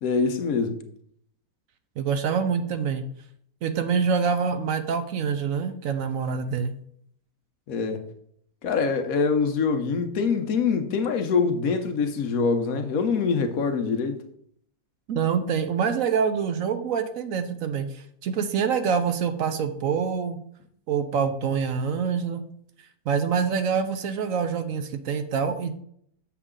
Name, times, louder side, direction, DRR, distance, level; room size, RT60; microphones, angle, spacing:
voice 1, 0.0-0.8 7.7-8.0 8.6-14.2, left 5 dB, 65° left, 1.2 m, -24 dB
voice 2, 2.0-3.0 3.6-6.7 15.1-20.4 20.9-22.4 23.1-25.8, right 6 dB, 70° right, 1.0 m, -26 dB
7.0 x 6.7 x 3.7 m
omnidirectional pair, 1.6 m